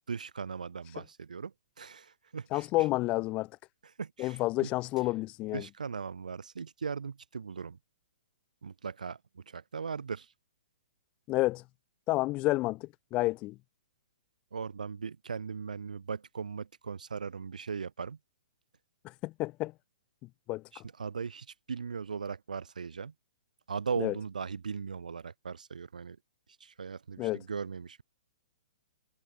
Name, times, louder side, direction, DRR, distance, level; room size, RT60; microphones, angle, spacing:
voice 1, 0.1-2.9 4.0-4.7 5.5-7.8 8.6-10.3 14.5-18.2 20.7-23.1 23.7-26.2 26.6-28.0, right 5 dB, 90° right, 5.4 m, -38 dB
voice 2, 2.5-3.5 4.2-5.6 11.3-11.6 12.1-13.5 19.2-19.7 20.5-20.8 24.0-24.1 27.2-27.4, left 19 dB, 30° left, 0.6 m, -30 dB
hypercardioid pair, 140°, 4 cm